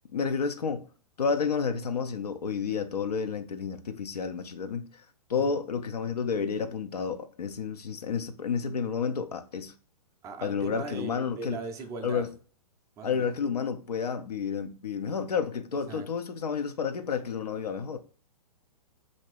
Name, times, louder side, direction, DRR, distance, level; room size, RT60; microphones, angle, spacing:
voice 1, 0.1-0.8 1.2-5.0 5.3-9.7 10.4-11.6 12.0-12.3 13.0-18.0, left 6 dB, 75° left, 0.4 m, -30 dB
voice 2, 10.2-12.3 13.0-13.3 15.9-16.1, right 4 dB, 15° right, 0.4 m, -39 dB
2.9 x 2.6 x 3.1 m
figure-of-eight pair, 115°, 20 cm